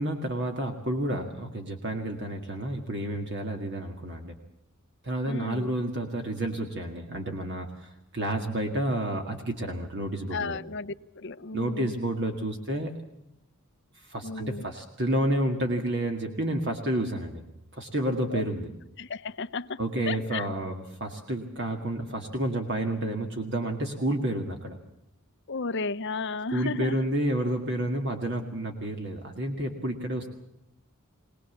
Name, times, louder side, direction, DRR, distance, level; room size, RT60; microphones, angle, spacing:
voice 1, 0.0-4.4 5.0-10.6 11.5-12.9 13.9-17.4 17.7-18.7 19.8-24.8 26.5-30.3, right 1 dB, 50° right, 2.0 m, -30 dB
voice 2, 5.3-5.7 10.3-11.9 14.2-14.6 18.3-18.4 19.0-19.8 20.1-20.4 25.5-27.0, left 4 dB, 55° left, 0.7 m, -33 dB
23.0 x 19.0 x 7.3 m
head